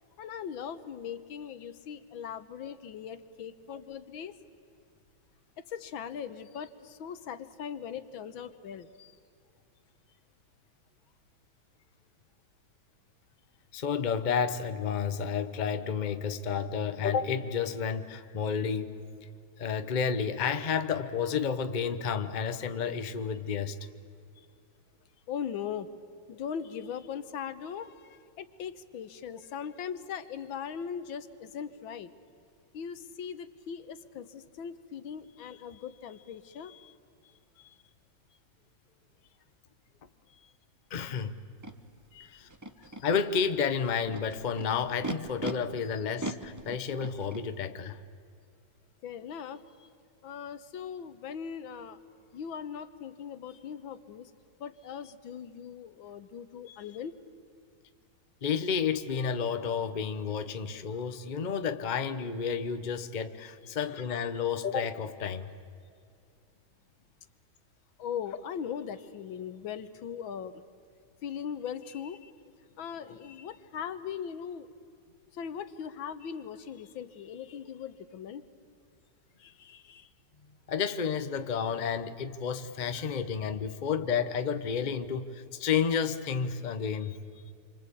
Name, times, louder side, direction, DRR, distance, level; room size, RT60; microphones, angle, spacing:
voice 1, 0.2-4.4 5.7-9.2 24.4-24.5 25.3-25.9 26.3-32.1 32.7-37.0 37.2-37.8 40.3-40.5 42.1-42.4 42.9-43.1 45.8-45.9 49.0-49.9 50.2-54.3 54.6-57.2 68.0-70.6 71.2-72.3 72.8-74.7 75.3-78.4 79.4-80.1 87.0-87.5, left 8 dB, 85° left, 1.8 m, -40 dB
voice 2, 13.7-19.0 19.6-23.8 40.9-41.3 42.3-42.5 43.0-48.0 58.4-65.5 80.7-87.1, left 6 dB, 35° left, 0.8 m, -31 dB
Animal, 41.6-41.7 42.5-43.0 43.8-45.5 46.2-47.4, right 2 dB, 15° right, 0.6 m, -38 dB
27.5 x 25.0 x 8.5 m
omnidirectional pair, 2.1 m